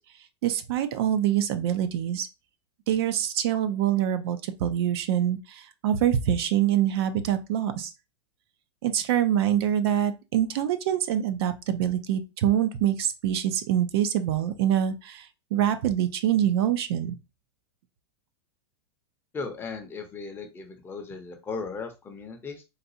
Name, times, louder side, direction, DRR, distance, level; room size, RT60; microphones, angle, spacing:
voice 1, 0.4-2.3 2.9-7.9 8.8-17.2, right 10 dB, 65° right, 0.5 m, -25 dB
voice 2, 19.3-22.6, left 4 dB, 15° left, 0.6 m, -37 dB
3.9 x 2.3 x 2.7 m
supercardioid pair, 140°, 14 cm